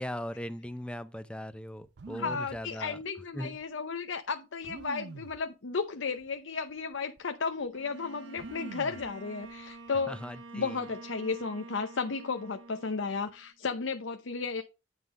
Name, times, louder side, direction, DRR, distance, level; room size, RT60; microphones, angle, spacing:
voice 1, 0.0-3.0 3.3-3.6 10.1-10.8, equal, 5° left, 0.5 m, -39 dB
sound 1, 1.9-2.6 3.5-3.6 4.6-5.4 6.2-6.4 6.7-7.2 8.4-9.1 9.4-10.0, right 3 dB, 60° right, 0.5 m, -45 dB
voice 2, 2.1-10.2 10.5-14.6, left 4 dB, 85° left, 0.7 m, -34 dB
Bowed string instrument, 7.7-13.5, right 3 dB, 85° right, 1.2 m, -48 dB
9.8 x 3.7 x 6.1 m
head